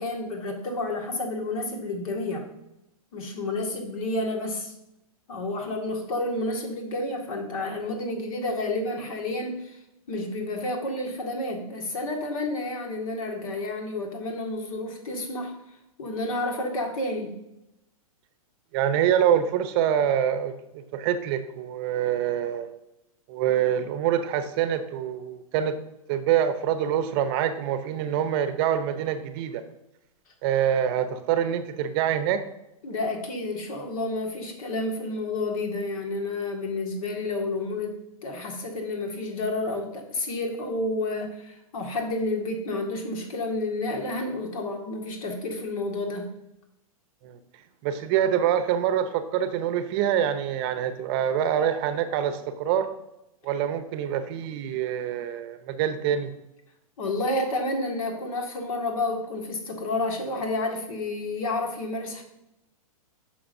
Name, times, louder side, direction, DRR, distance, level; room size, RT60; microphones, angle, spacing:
voice 1, 0.0-2.5 3.1-4.7 5.3-9.8 10.1-15.5 16.0-17.4 32.8-46.3 57.0-62.2, left 2 dB, 65° left, 2 dB, 1.9 m, -30 dB
voice 2, 18.7-22.7 23.3-25.8 26.1-29.6 30.4-32.4 47.2-47.4 47.8-52.9 53.4-56.3, right 9 dB, 40° right, 11 dB, 0.7 m, -25 dB
9.5 x 6.1 x 2.7 m, 0.87 s
hypercardioid pair, 125°, 19 cm